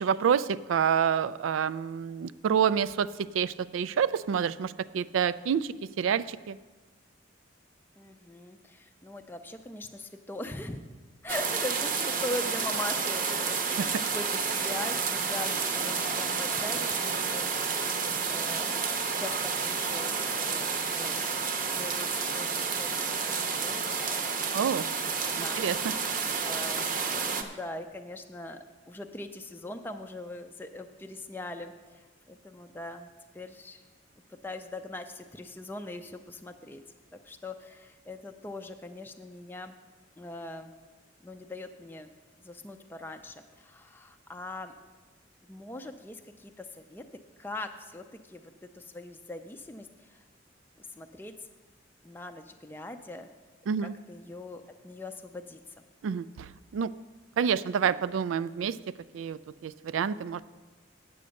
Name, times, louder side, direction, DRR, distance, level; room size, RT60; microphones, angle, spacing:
voice 1, 0.0-6.6 13.8-13.9 24.5-24.8 25.4-25.8 53.7-53.9 56.0-56.9 57.4-58.8 59.1-60.4, right 7 dB, 90° right, 17 dB, 0.3 m, -28 dB
voice 2, 8.0-10.8 11.2-17.5 17.9-21.2 21.7-24.7 25.1-25.2 25.4-25.6 26.4-33.1 33.3-33.8 34.4-36.8 37.2-39.8 40.2-40.7 41.2-42.1 42.4-44.7 45.5-47.0 47.4-50.2 50.8-51.3 52.0-53.3 53.8-55.6, left 2 dB, 10° left, 6 dB, 0.4 m, -41 dB
sound 1, 11.3-27.4, right 5 dB, 45° right, 0.8 m, -30 dB
8.5 x 7.9 x 6.3 m, 1.3 s
head